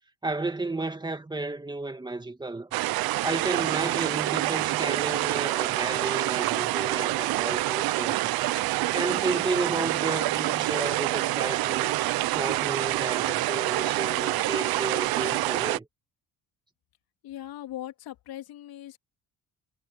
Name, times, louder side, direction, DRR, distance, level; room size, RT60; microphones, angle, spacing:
voice 1, 0.2-2.8 3.2-8.2 8.9-12.0 12.3-15.9, right 2 dB, 10° right, 2.2 m, -32 dB
sound 1, 2.7-15.8, right 17 dB, 90° right, 0.9 m, -27 dB
voice 2, 17.2-19.0, left 13 dB, 85° left, 3.3 m, -39 dB
cardioid pair, 120°, 35 cm